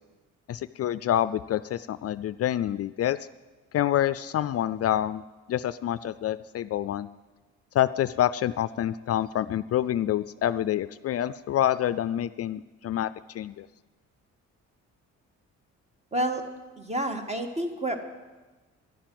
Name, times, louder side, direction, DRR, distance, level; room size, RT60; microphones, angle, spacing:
voice 1, 0.5-3.2 3.7-5.2 5.5-7.1 7.7-13.7, left 11 dB, 55° left, 15 dB, 0.4 m, -27 dB
voice 2, 16.1-16.4 16.8-18.0, right 1 dB, 20° right, 6 dB, 1.8 m, -29 dB
11.5 x 11.0 x 7.7 m, 1.2 s
cardioid pair, 90°, 30 cm